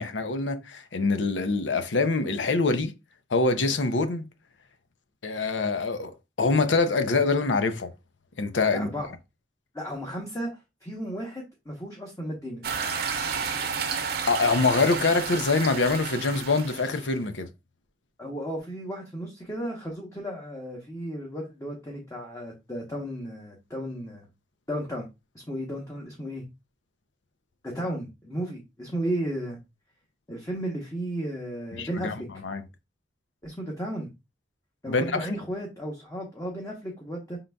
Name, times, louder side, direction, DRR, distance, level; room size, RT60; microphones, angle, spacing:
voice 1, 0.0-2.9 3.3-4.2 5.2-6.1 6.4-7.9 8.4-8.9 14.3-17.5 31.7-32.6 34.9-35.3, left 3 dB, 85° left, 0.6 m, -25 dB
voice 2, 8.7-9.1 9.7-10.5 10.8-12.6 18.2-24.2 24.7-25.1 25.5-26.5 27.6-29.6 30.3-32.3 33.4-34.1 34.8-37.4, right 1 dB, 15° left, 0.9 m, -34 dB
sound 1, 12.6-17.1, right 6 dB, 60° right, 0.7 m, -31 dB
5.3 x 3.8 x 2.2 m
head